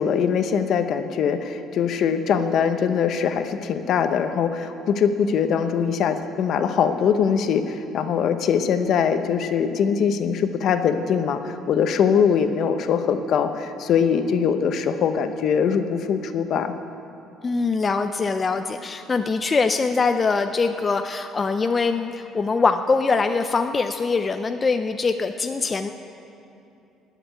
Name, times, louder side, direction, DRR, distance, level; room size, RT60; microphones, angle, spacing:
voice 1, 0.0-16.7, left 7 dB, 60° left, 9 dB, 0.8 m, -22 dB
voice 2, 17.4-25.9, left 4 dB, 25° left, 7 dB, 0.5 m, -23 dB
17.5 x 6.0 x 9.5 m, 2.8 s
cardioid pair, 115°, 0 cm